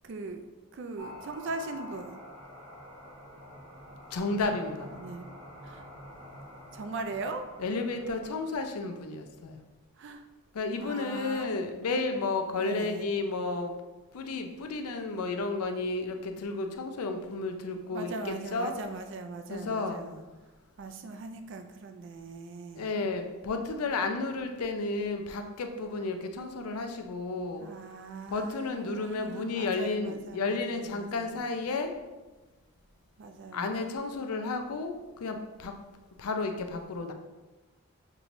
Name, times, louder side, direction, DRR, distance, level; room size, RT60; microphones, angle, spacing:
voice 1, 0.0-0.4 0.7-2.2 4.9-5.4 5.6-5.8 6.7-7.5 10.0-10.2 10.8-11.6 12.5-13.0 17.9-20.3 20.8-22.9 27.6-31.5 33.2-33.8, right 3 dB, 55° right, 7 dB, 0.3 m, -40 dB
sound 1, 1.0-8.9, left 1 dB, 85° right, 1.1 m, -48 dB
voice 2, 4.1-4.9 7.6-9.6 10.5-13.7 14.1-18.7 19.5-20.0 22.7-27.7 28.3-31.9 33.5-35.8 36.2-37.1, left 3 dB, 85° left, 6 dB, 0.5 m, -32 dB
6.7 x 3.0 x 2.6 m, 1.2 s
head